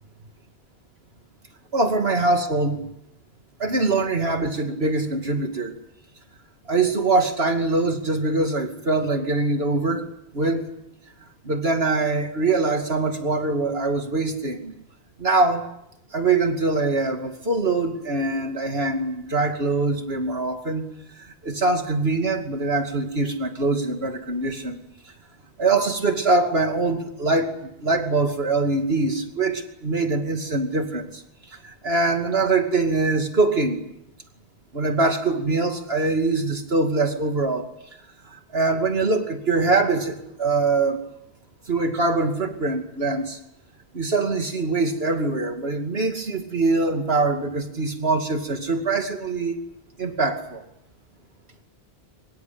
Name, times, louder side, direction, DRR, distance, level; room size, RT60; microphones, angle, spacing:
voice 1, 1.7-2.9 3.6-5.8 6.7-10.1 10.3-10.7 11.4-14.7 15.2-15.7 16.1-20.8 21.4-24.8 25.6-31.2 31.6-33.8 34.7-37.7 38.2-41.0 41.7-43.4 43.9-49.6 50.0-50.6, right 3 dB, 75° right, 5 dB, 2.8 m, -23 dB
24.5 x 22.0 x 8.8 m, 0.80 s
omnidirectional pair, 1.1 m